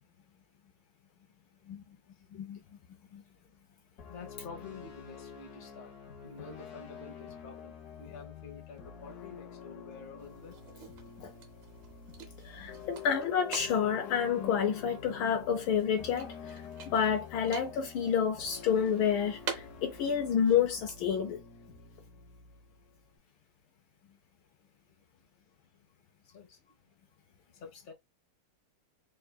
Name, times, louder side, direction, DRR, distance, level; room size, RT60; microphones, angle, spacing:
sound 1, 4.0-23.2, left 7 dB, 55° left, 1.2 m, -48 dB
voice 1, 4.0-5.9 6.2-10.5 24.9-25.0 26.2-26.7 27.5-27.9, left 4 dB, 30° left, 0.9 m, -49 dB
sound 2, 10.2-21.2, right 6 dB, 65° right, 1.5 m, -48 dB
voice 2, 12.4-21.4, left 7 dB, 75° left, 1.2 m, -29 dB
3.7 x 3.6 x 2.2 m
omnidirectional pair, 2.4 m